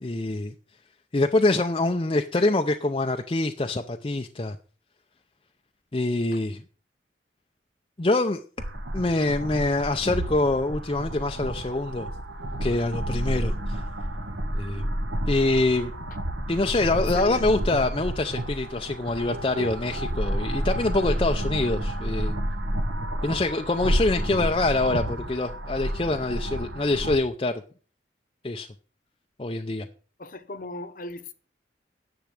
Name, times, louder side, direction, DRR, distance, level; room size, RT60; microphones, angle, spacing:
voice 1, 0.0-0.5 1.1-4.6 5.9-6.6 8.0-8.4 8.9-12.1 12.6-13.8 14.5-14.8 15.3-15.9 16.5-22.3 23.2-27.5 28.4-28.7 29.4-29.9, left 2 dB, 30° left, 0.5 m, -25 dB
sound 1, 8.6-27.2, right 1 dB, 90° right, 1.5 m, -30 dB
voice 2, 17.0-17.4 30.2-31.3, left 2 dB, 50° left, 0.9 m, -36 dB
10.5 x 7.1 x 6.4 m
head